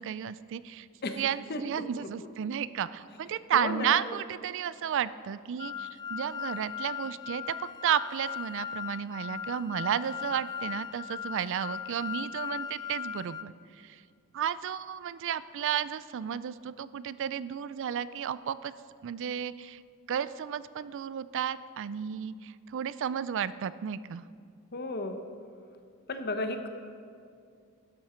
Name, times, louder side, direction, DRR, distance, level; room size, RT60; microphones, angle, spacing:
voice 1, 0.0-0.9 1.2-7.6 7.8-13.5 13.8-14.0 14.3-18.7 19.0-19.8 20.1-24.2, right 9 dB, 60° right, 16 dB, 0.3 m, -32 dB
voice 2, 1.9-2.3 3.5-4.0 24.7-25.2 26.1-26.7, left 2 dB, 45° left, 7 dB, 0.9 m, -34 dB
sound 1, 5.6-13.4, left 8 dB, 20° left, 0.3 m, -38 dB
13.0 x 10.5 x 4.4 m, 2.3 s
head